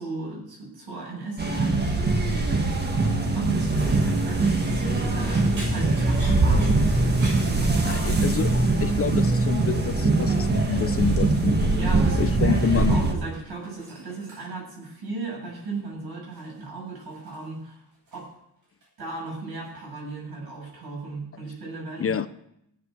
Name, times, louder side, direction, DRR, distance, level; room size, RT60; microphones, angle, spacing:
voice 1, 0.0-1.8 3.3-8.6 11.8-17.8 18.1-18.3 19.0-22.2, right 3 dB, 75° right, -2 dB, 7.5 m, -36 dB
sound 1, 1.4-13.1, right 2 dB, 25° right, 1.5 m, -22 dB
sound 2, 4.4-4.6 5.2-8.2 8.5-8.9 9.2-9.7 10.4-11.8 12.1-12.9 13.2-14.7 15.6-15.9 16.3-18.4 18.6-19.2 19.5-19.7 21.0-21.1, right 1 dB, 55° right, 6.8 m, -47 dB
voice 2, 7.8-11.7 12.1-13.0 22.0-22.3, left 8 dB, 40° left, 13 dB, 0.5 m, -28 dB
16.5 x 7.8 x 6.7 m, 0.77 s
wide cardioid pair, 175°, 38 cm